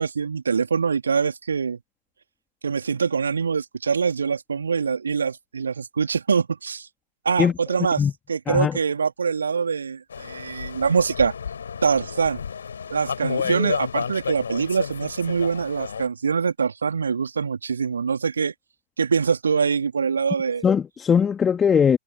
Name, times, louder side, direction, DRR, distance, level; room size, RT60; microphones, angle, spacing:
voice 1, 0.0-1.8 2.6-6.9 7.2-8.0 8.3-11.3 11.8-12.4 12.9-18.5 19.0-20.6, right 5 dB, 75° right, 2.8 m, -24 dB
voice 2, 8.5-8.8 13.5-13.7 20.6-22.0, left 7 dB, 20° left, 2.4 m, -20 dB
sound 1, 10.1-16.1, left 6 dB, 70° left, 3.9 m, -31 dB
figure-of-eight pair, 90°, 0 cm